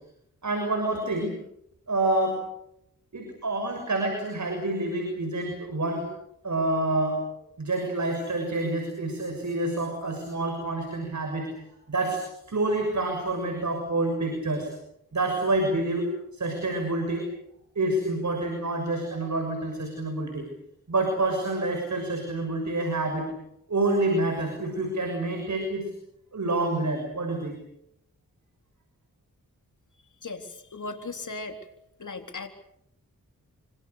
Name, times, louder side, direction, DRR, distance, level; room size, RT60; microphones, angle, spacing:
voice 1, 0.4-1.4 1.9-2.4 3.1-6.1 6.4-7.2 7.6-11.6 11.9-12.2 12.5-14.7 15.1-17.3 17.7-20.5 20.9-23.3 23.7-25.9 26.3-27.6, right 2 dB, 55° right, 4 dB, 6.7 m, -27 dB
voice 2, 30.2-31.6 32.0-32.5, left 3 dB, 60° left, 5 dB, 3.8 m, -37 dB
26.0 x 25.5 x 6.9 m, 0.76 s
cardioid pair, 60°, 34 cm